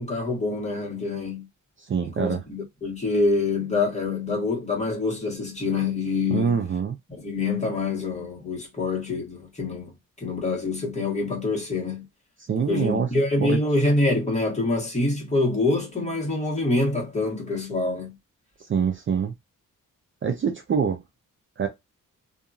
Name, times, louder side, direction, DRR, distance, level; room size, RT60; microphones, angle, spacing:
voice 1, 0.0-1.5 2.2-6.6 7.1-12.1 12.7-18.2, left 2 dB, 20° left, 1.4 m, -26 dB
voice 2, 1.8-2.4 6.3-7.0 12.5-13.1 13.4-13.6 18.7-19.3 20.2-21.0 21.6-21.7, right 6 dB, 40° right, 0.5 m, -24 dB
2.7 x 2.5 x 2.4 m
wide cardioid pair, 150°, 33 cm